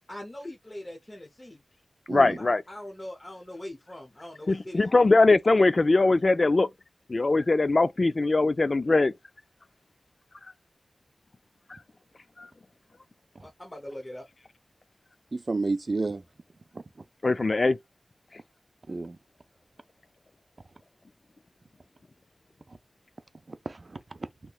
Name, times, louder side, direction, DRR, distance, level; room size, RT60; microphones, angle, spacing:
voice 1, 0.1-1.6 2.3-5.1 13.4-14.3, left 1 dB, 30° left, 0.8 m, -42 dB
voice 2, 2.1-2.6 4.5-6.7 7.1-9.1 12.4-12.5 17.2-17.8, left 3 dB, 55° left, 0.3 m, -21 dB
voice 3, 15.3-16.2 16.7-16.8 18.9-19.2 23.5-24.3, right 3 dB, 55° right, 0.4 m, -31 dB
3.3 x 2.9 x 2.3 m
cardioid pair, 40°, 0 cm